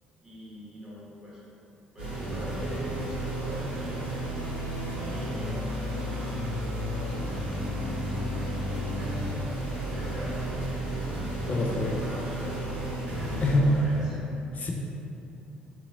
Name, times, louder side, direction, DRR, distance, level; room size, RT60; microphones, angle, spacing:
voice 1, 0.2-1.4 1.9-4.2 5.0-6.3 6.9-9.2 9.9-10.9 11.1-14.4, equal, 5° right, -8 dB, 1.3 m, -43 dB
sound 1, 2.0-14.0, right 1 dB, 80° right, 0.7 m, -32 dB
voice 2, 11.5-12.0 13.4-13.7 14.6-14.7, left 2 dB, 35° left, -1 dB, 0.5 m, -25 dB
3.8 x 2.8 x 2.6 m, 2.9 s
figure-of-eight pair, 50°, 5 cm